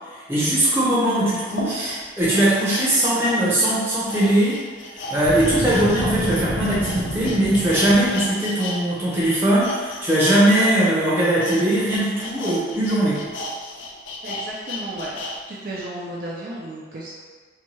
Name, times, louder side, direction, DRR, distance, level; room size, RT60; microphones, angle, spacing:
voice 1, 0.3-4.6 5.1-13.3, right 1 dB, 15° right, -10 dB, 0.8 m, -20 dB
sound 1, 0.7-0.8 1.4-8.8 9.1-15.4 15.7-15.8, left 2 dB, 90° left, 0.4 m, -35 dB
Boom, 5.2-8.3, equal, 40° left, 0.7 m, -27 dB
voice 2, 14.2-15.2 15.5-17.1, right 1 dB, 50° right, -6 dB, 0.4 m, -33 dB
2.8 x 2.2 x 3.0 m, 1.5 s
head